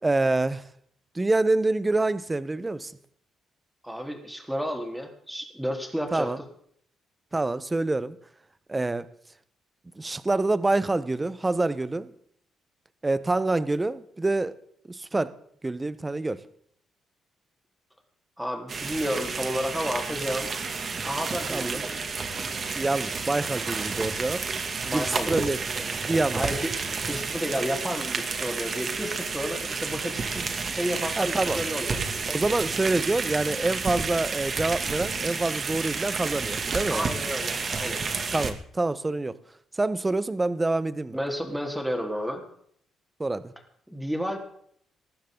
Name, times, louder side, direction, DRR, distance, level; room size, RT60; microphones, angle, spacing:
voice 1, 0.0-0.7 1.1-2.9 6.1-6.4 7.3-8.2 8.7-9.1 10.0-12.1 13.0-14.5 14.9-15.4 15.6-16.4 21.5-21.8 22.8-24.4 24.9-26.4 31.2-31.6 32.3-37.1 38.3-39.4 39.7-41.2 43.2-43.5, right 2 dB, 20° right, 1.1 m, -26 dB
voice 2, 3.8-6.3 18.4-20.5 21.0-22.0 24.8-25.5 26.3-32.2 36.9-38.0 41.1-42.4 43.9-44.4, equal, 5° right, 4.1 m, -31 dB
sound 1, 18.7-38.5, right 4 dB, 40° right, 2.5 m, -31 dB
20.0 x 14.5 x 4.0 m
cardioid pair, 90°, 0 cm